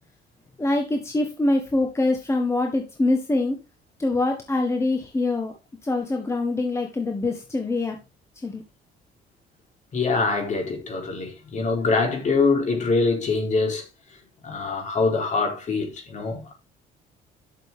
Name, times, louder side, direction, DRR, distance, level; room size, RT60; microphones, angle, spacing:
voice 1, 0.6-3.6 4.0-5.5 5.8-8.0 8.4-8.6, left 2 dB, 15° left, 1.6 m, -24 dB
voice 2, 9.9-13.8 14.4-16.5, left 3 dB, 45° left, 4.4 m, -24 dB
11.5 x 6.7 x 3.8 m
cardioid pair, 110°, 17 cm